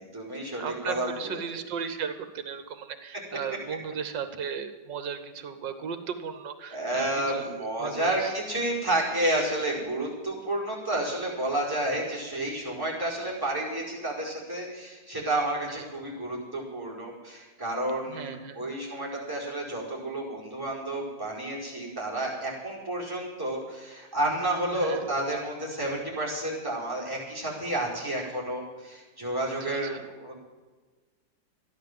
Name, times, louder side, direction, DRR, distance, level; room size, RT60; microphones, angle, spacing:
voice 1, 0.0-1.4 6.7-30.4, right 1 dB, 10° right, -5 dB, 5.0 m, -30 dB
voice 2, 0.6-8.3 15.7-15.8 18.1-18.7 24.7-25.0 29.6-30.0, right 6 dB, 90° right, 9 dB, 1.7 m, -36 dB
13.5 x 11.0 x 7.6 m, 1.3 s
omnidirectional pair, 1.9 m